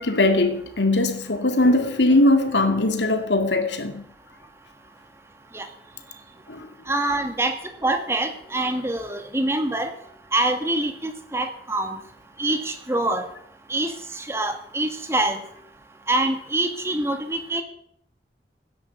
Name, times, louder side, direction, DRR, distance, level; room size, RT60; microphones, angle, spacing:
voice 1, 0.0-4.0 6.5-6.7 7.0-7.1, left 2 dB, 90° left, 2.3 m, -20 dB
voice 2, 6.9-7.5 7.8-9.9 10.3-12.0 12.4-13.3 13.7-15.4 16.1-17.6, right 2 dB, 15° right, 1.9 m, -25 dB
17.0 x 10.5 x 8.2 m
head